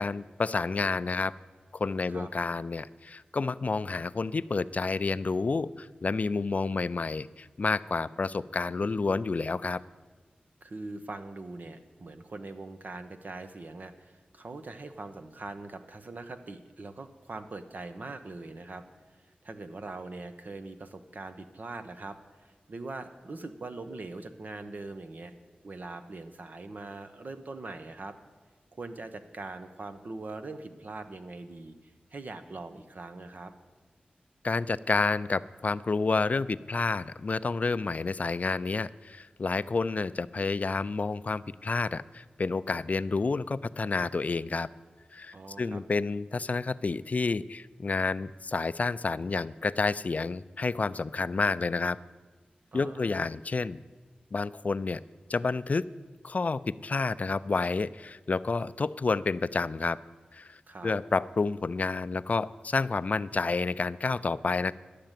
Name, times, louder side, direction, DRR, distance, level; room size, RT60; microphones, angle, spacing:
voice 1, 0.0-1.3 1.7-9.8 34.4-44.7 45.1-52.0 52.7-53.8 54.3-55.0 55.3-55.9 56.2-60.0 60.3-64.7, left 4 dB, 50° left, 17 dB, 0.3 m, -29 dB
voice 2, 10.6-18.8 19.4-25.3 25.6-28.1 28.7-31.7 32.1-33.5 45.3-45.8 52.7-53.1 60.7-60.9, right 3 dB, 65° right, 9 dB, 0.9 m, -42 dB
11.5 x 6.7 x 9.0 m, 1.4 s
wide cardioid pair, 65°, 3 cm